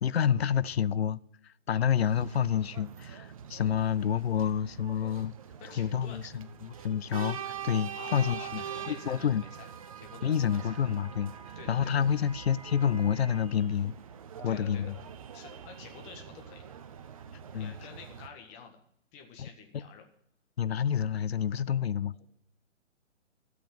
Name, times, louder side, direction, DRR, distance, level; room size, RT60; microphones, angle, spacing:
voice 1, 0.0-5.3 5.8-9.4 10.2-11.3 11.7-14.0 14.4-14.9 17.5-17.7 19.4-19.5 19.7-19.8 20.6-22.1, left 8 dB, 55° left, 0.6 m, -29 dB
sound 1, 2.0-18.3, right 8 dB, 30° right, 0.7 m, -44 dB
voice 2, 5.6-6.2 8.0-9.7 10.0-10.8 11.6-12.0 14.5-14.9 15.3-16.6 17.6-18.8 19.1-20.1, left 6 dB, 20° left, 1.7 m, -49 dB
12.5 x 7.7 x 9.2 m
figure-of-eight pair, 135°, 37 cm